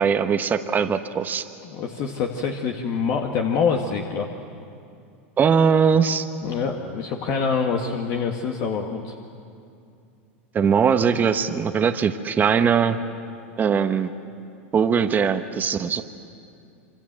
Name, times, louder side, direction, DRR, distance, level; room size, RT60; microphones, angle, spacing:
voice 1, 0.0-1.4 5.4-6.2 10.5-13.0 13.6-14.1 14.7-16.0, right 6 dB, 25° right, 7 dB, 1.2 m, -20 dB
voice 2, 1.6-4.3 6.4-9.1, left 5 dB, 50° left, 2 dB, 1.9 m, -25 dB
27.0 x 25.0 x 7.6 m, 2.5 s
hypercardioid pair, 105°, 7 cm